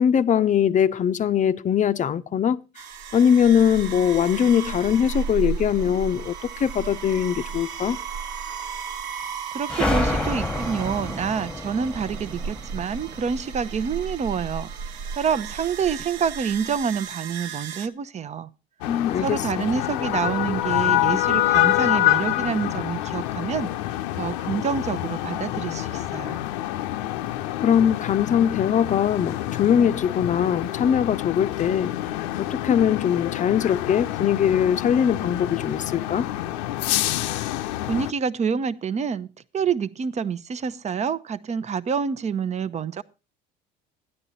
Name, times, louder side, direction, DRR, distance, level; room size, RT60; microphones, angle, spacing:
voice 1, 0.0-2.6 3.1-8.0 18.9-19.7 27.6-36.3, left 8 dB, 35° left, 0.6 m, -21 dB
sound 1, 2.7-17.9, right 6 dB, 80° right, 1.0 m, -34 dB
voice 2, 9.5-14.7 15.2-18.5 19.2-26.4 37.8-39.3 39.5-43.0, right 6 dB, 35° right, 0.7 m, -27 dB
sound 2, 9.7-14.2, left 1 dB, 5° left, 1.3 m, -29 dB
sound 3, 18.8-38.1, left 14 dB, 90° left, 0.7 m, -26 dB
13.0 x 10.0 x 4.1 m
supercardioid pair, 90°, 21 cm